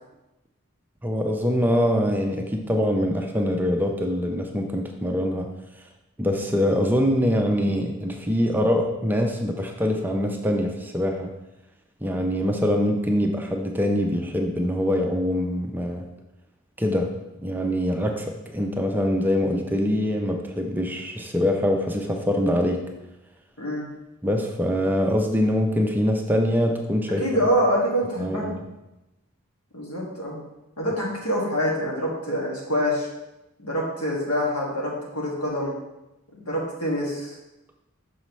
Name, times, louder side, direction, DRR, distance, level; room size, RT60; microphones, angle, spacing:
voice 1, 1.0-5.5 6.2-11.3 12.0-16.1 16.8-17.1 17.4-22.8 24.2-27.2 28.2-28.6, equal, 10° right, 2 dB, 0.5 m, -24 dB
voice 2, 27.2-28.5 29.7-30.4 30.8-33.1 33.6-35.7 36.3-37.4, equal, 90° left, -3 dB, 1.8 m, -25 dB
6.2 x 5.5 x 3.1 m, 0.95 s
head